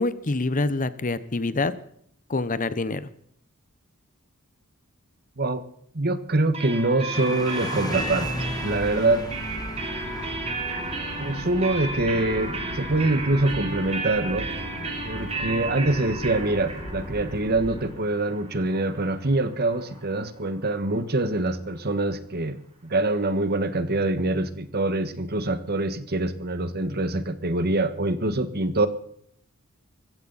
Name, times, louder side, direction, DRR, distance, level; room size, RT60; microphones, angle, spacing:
voice 1, 0.0-1.7 2.3-3.1, left 2 dB, 40° left, 15 dB, 1.0 m, -26 dB
voice 2, 5.9-9.3 11.2-14.5 15.0-22.6 22.8-28.9, right 2 dB, 45° right, 12 dB, 1.5 m, -25 dB
sound 1, 6.5-20.1, right 3 dB, 30° right, 3.4 m, -34 dB
sound 2, 7.1-21.1, left 1 dB, 20° left, 2.1 m, -40 dB
sound 3, 7.9-17.9, equal, 80° left, 7.6 m, -39 dB
21.0 x 16.0 x 4.2 m, 0.66 s
head